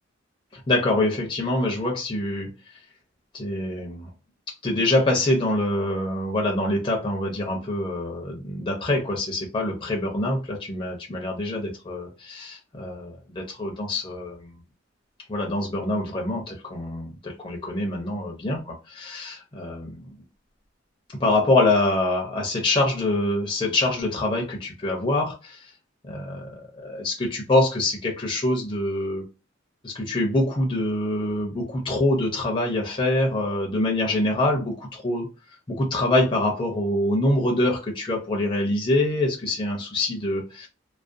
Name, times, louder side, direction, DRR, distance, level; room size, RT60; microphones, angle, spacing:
voice 1, 0.5-2.5 3.3-4.1 4.6-14.6 15.3-20.0 21.2-25.6 26.1-29.2 29.8-35.3 35.7-40.7, left 1 dB, 25° left, 0.5 m, -25 dB
2.4 x 2.1 x 2.5 m
head